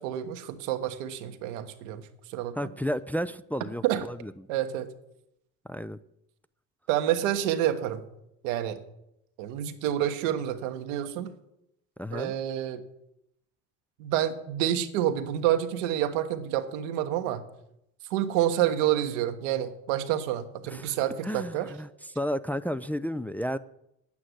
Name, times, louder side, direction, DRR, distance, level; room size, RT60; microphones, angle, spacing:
voice 1, 0.0-2.0 2.3-2.5 3.8-4.0 4.5-4.9 6.9-8.0 8.4-8.8 9.4-11.3 12.1-12.8 14.0-17.4 18.1-21.7, right 11 dB, 90° right, 1.2 m, -28 dB
voice 2, 2.6-4.5 5.7-6.0 12.0-12.4 20.6-21.0 21.2-23.6, equal, 5° left, 0.4 m, -32 dB
9.8 x 8.6 x 7.9 m
supercardioid pair, 75°, 37 cm